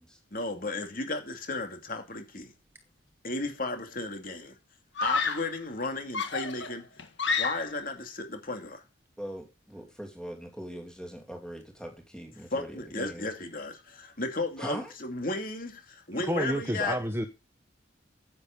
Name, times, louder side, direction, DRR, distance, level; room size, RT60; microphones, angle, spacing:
voice 1, 0.3-2.5 3.2-4.5 5.0-6.9 7.4-8.8 12.5-17.0, left 2 dB, 45° left, 2.5 m, -34 dB
Screaming, 3.4-3.9 5.0-5.6 6.1-7.9, left 4 dB, 70° left, 1.7 m, -31 dB
voice 2, 9.2-13.3 14.6-14.9, equal, 5° left, 2.9 m, -41 dB
voice 3, 16.1-17.3, right 1 dB, 15° right, 0.8 m, -30 dB
9.8 x 8.9 x 5.1 m
head